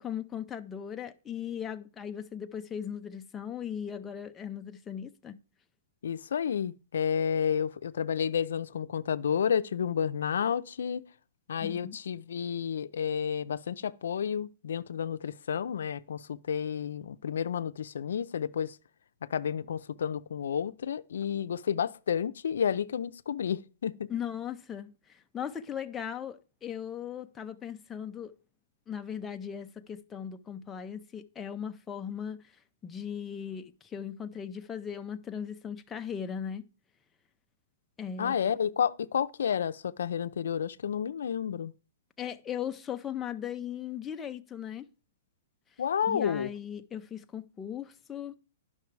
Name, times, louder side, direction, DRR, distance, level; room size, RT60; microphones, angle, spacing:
voice 1, 0.0-5.4 11.6-12.0 24.1-28.3 28.9-32.4 32.8-36.7 38.0-38.4 42.2-44.9 46.1-48.4, left 8 dB, 15° left, 0.5 m, -38 dB
voice 2, 6.0-11.1 11.5-18.8 19.3-24.1 38.2-41.7 45.8-46.5, left 8 dB, 80° left, 0.5 m, -31 dB
10.5 x 5.7 x 4.7 m
hypercardioid pair, 155°, 0 cm